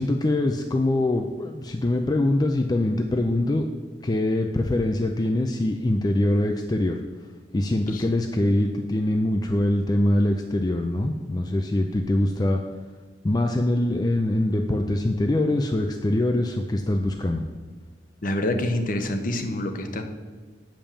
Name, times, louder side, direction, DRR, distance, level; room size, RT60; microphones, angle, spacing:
voice 1, 0.0-3.7 4.0-7.0 7.5-12.6 13.2-17.4, left 1 dB, 20° left, 4 dB, 0.4 m, -23 dB
voice 2, 18.2-20.0, left 1 dB, 50° left, 6 dB, 0.9 m, -26 dB
7.1 x 5.2 x 7.2 m, 1.4 s
head